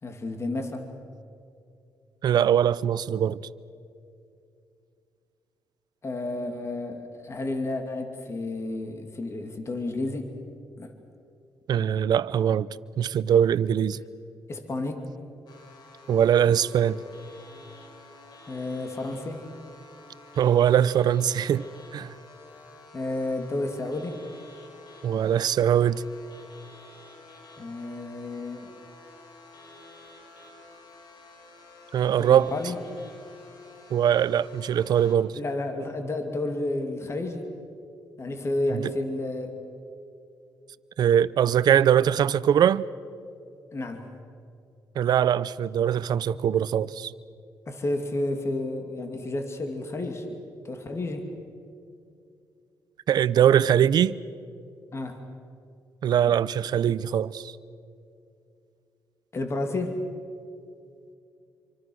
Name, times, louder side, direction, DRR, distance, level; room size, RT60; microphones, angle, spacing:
voice 1, 0.0-0.9 6.0-10.3 10.8-10.9 14.5-15.1 18.5-19.4 22.9-24.2 27.6-28.7 32.2-32.8 35.3-37.5 38.2-39.6 43.7-44.1 47.7-50.4 50.6-51.3 54.9-55.2 56.3-56.4 59.3-60.0, left 2 dB, 35° left, 2.5 m, -31 dB
voice 2, 2.2-3.4 11.7-12.7 13.0-14.0 16.1-17.0 20.4-21.6 21.9-22.1 25.0-26.0 31.9-32.5 33.9-35.4 41.0-42.8 45.0-47.1 53.1-54.2 56.0-57.5, right 9 dB, 65° right, 0.6 m, -22 dB
sound 1, 15.5-35.2, left 2 dB, 65° left, 4.2 m, -50 dB
26.5 x 25.0 x 6.4 m
cardioid pair, 90°, 8 cm